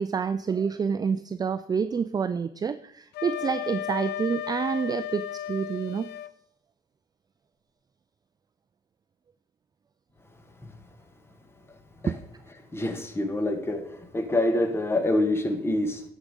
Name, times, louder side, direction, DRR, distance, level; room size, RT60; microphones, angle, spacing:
voice 1, 0.0-6.1 12.1-12.2, right 6 dB, 25° right, 0.4 m, -28 dB
Wind instrument woodwind instrument, 3.1-6.3, left 11 dB, 75° left, 0.5 m, -34 dB
voice 2, 12.7-16.0, left 1 dB, 15° left, 1.3 m, -26 dB
11.5 x 5.0 x 5.2 m
cardioid pair, 110°, 17 cm